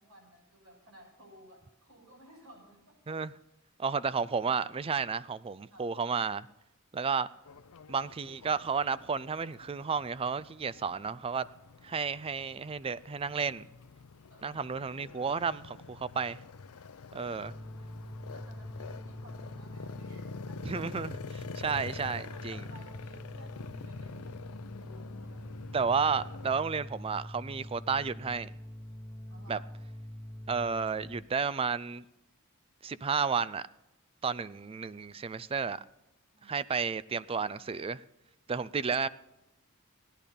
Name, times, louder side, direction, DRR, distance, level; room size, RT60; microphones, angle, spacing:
voice 1, 0.0-3.0 5.7-5.9 14.3-14.6 14.9-15.2 18.3-20.6 22.3-24.5 24.8-25.7 29.3-29.7 36.3-36.5, right 1 dB, 65° right, 6.7 m, -57 dB
voice 2, 3.8-6.5 6.9-7.3 7.9-11.5 11.8-13.7 14.4-16.4 17.1-17.5 20.6-22.6 25.7-28.5 29.5-29.6 30.5-32.1 32.8-33.6 34.2-35.8 36.4-38.0 38.5-39.1, right 5 dB, 25° right, 0.4 m, -32 dB
sound 1, 7.4-26.6, left 5 dB, 90° left, 0.6 m, -47 dB
sound 2, 17.4-31.2, equal, 15° left, 1.4 m, -44 dB
16.5 x 10.0 x 5.3 m
head